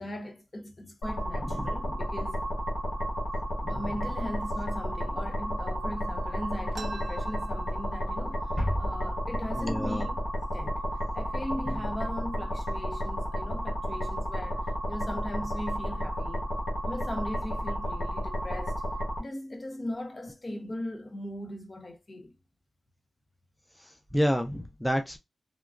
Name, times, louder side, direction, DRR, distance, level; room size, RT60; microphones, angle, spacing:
voice 1, 0.0-2.4 3.7-10.8 11.1-16.4 16.9-18.8 19.2-22.3, left 1 dB, 45° left, 0.8 m, -39 dB
sound 1, 1.0-19.2, equal, 85° left, 1.0 m, -32 dB
voice 2, 1.4-1.7 3.6-3.8 9.6-10.1 23.8-25.2, equal, 5° left, 0.4 m, -29 dB
sound 2, 6.7-8.3 8.7-8.8 9.0-9.7 10.3-10.4 11.1-11.3 11.8-12.2, right 4 dB, 70° right, 0.4 m, -47 dB
sound 3, 8.6-11.2, equal, 30° left, 1.5 m, -35 dB
2.9 x 2.3 x 2.4 m
cardioid pair, 45°, 0 cm